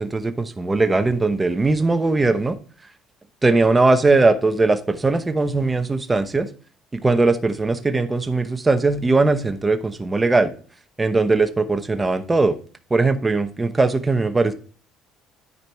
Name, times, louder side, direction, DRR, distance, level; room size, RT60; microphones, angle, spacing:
voice 1, 0.0-2.6 3.4-6.5 6.9-10.5 11.0-12.6 12.9-14.5, right 3 dB, 15° right, 8 dB, 0.9 m, -19 dB
12.0 x 4.8 x 3.4 m, 0.41 s
cardioid pair, 140°, 0 cm